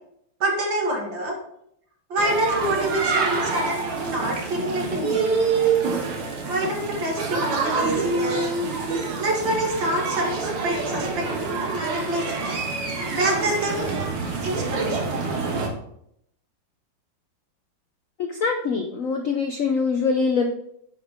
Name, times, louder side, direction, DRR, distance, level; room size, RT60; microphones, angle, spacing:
voice 1, 0.4-1.4 2.1-3.8 4.1-5.3 6.5-8.5 9.2-12.5 12.9-13.9 14.4-15.2, right 1 dB, 60° right, -1 dB, 2.6 m, -26 dB
sound 1, 2.2-15.7, right 4 dB, 85° right, 2.2 m, -26 dB
voice 2, 18.2-20.5, left 5 dB, 75° left, 4 dB, 0.7 m, -24 dB
9.6 x 5.5 x 3.6 m, 0.73 s
omnidirectional pair, 2.3 m